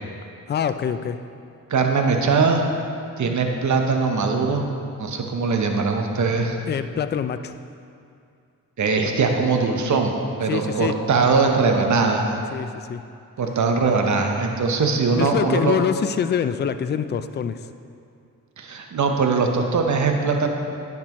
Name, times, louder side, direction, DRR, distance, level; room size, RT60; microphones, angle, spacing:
voice 1, 0.5-1.2 6.7-7.6 10.5-11.0 12.5-13.0 15.1-17.7, left 8 dB, 30° left, 11 dB, 0.4 m, -25 dB
voice 2, 1.7-2.6 3.2-4.7 5.0-6.6 8.8-12.3 13.4-15.8 18.6-20.5, right 4 dB, 55° right, 3 dB, 0.9 m, -21 dB
10.0 x 6.0 x 3.0 m, 2.4 s
cardioid pair, 50°, 35 cm